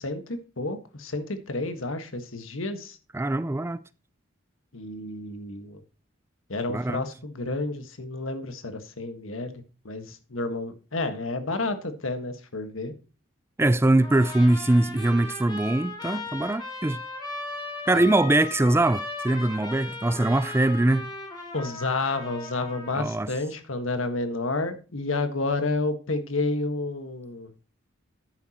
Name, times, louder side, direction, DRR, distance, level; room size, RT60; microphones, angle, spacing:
voice 1, 0.0-3.0 4.7-5.8 6.5-12.9 21.5-27.5, left 2 dB, 85° left, 1.5 m, -30 dB
voice 2, 3.1-3.8 6.7-7.0 13.6-17.0 17.9-21.1 22.9-23.3, right 1 dB, 10° right, 0.4 m, -22 dB
Trumpet, 14.0-23.1, left 2 dB, 20° left, 4.7 m, -37 dB
10.5 x 9.1 x 2.9 m
head